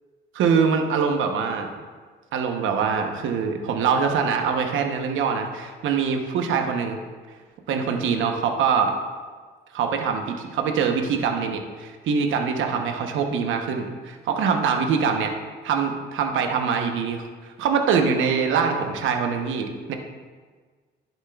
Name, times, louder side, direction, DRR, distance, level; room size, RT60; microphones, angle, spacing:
voice 1, 0.3-1.7 2.3-7.0 7.7-8.9 9.7-15.3 15.6-17.3 17.6-20.0, right 6 dB, 80° right, 4 dB, 0.9 m, -23 dB
11.0 x 7.2 x 2.3 m, 1.5 s
cardioid pair, 90°, 20 cm